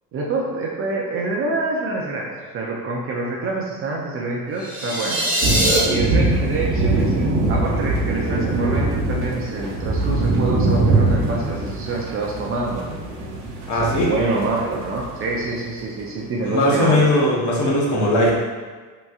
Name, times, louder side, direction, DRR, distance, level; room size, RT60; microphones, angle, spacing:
voice 1, 0.1-5.2 5.8-12.9 13.7-17.0, right 2 dB, 35° right, -2 dB, 0.4 m, -26 dB
sound 1, 4.6-5.8, right 1 dB, 5° right, 1.4 m, -22 dB
sound 2, 5.4-15.5, right 2 dB, 65° right, 0.9 m, -22 dB
voice 2, 13.7-14.1 16.4-18.3, left 1 dB, 50° left, -4 dB, 0.9 m, -19 dB
3.4 x 2.8 x 2.3 m, 1.4 s
cardioid pair, 130°, 39 cm